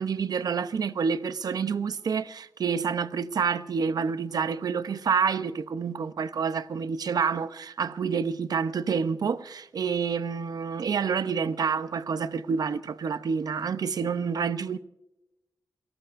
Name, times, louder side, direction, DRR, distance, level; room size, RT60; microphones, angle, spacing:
voice 1, 0.0-14.8, right 6 dB, 75° right, 0.7 m, -28 dB
28.5 x 18.0 x 2.6 m
wide cardioid pair, 115°, 7 cm